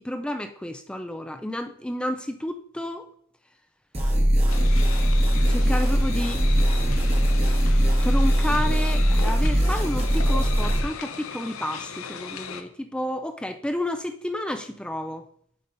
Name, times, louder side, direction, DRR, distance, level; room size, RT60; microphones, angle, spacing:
voice 1, 0.0-3.0 5.5-6.4 8.0-15.2, left 1 dB, 5° left, 6 dB, 0.3 m, -31 dB
sound 1, 3.9-10.8, equal, 30° right, 1.1 m, -21 dB
sound 2, 4.5-12.6, left 6 dB, 75° left, 0.6 m, -37 dB
11.0 x 5.2 x 2.6 m, 0.66 s
head